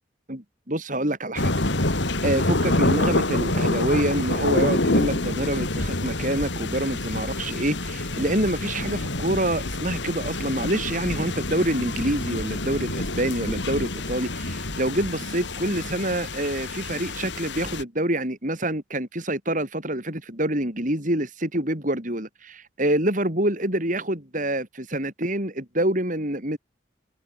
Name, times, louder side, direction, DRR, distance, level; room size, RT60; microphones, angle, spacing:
voice 1, 0.3-1.5 2.2-26.6, right 1 dB, 45° right, 6.2 m, -26 dB
sound 1, 1.4-17.8, left 2 dB, 70° left, 3.3 m, -27 dB
head